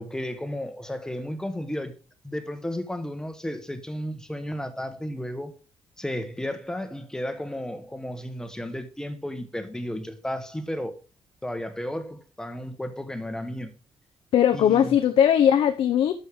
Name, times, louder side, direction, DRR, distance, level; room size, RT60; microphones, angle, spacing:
voice 1, 0.0-1.9 2.2-5.5 6.0-11.0 11.4-13.7 14.5-15.0, left 1 dB, 5° left, 1.1 m, -33 dB
voice 2, 14.3-16.1, left 9 dB, 70° left, 0.7 m, -19 dB
11.5 x 6.5 x 3.5 m
cardioid pair, 130°, 10 cm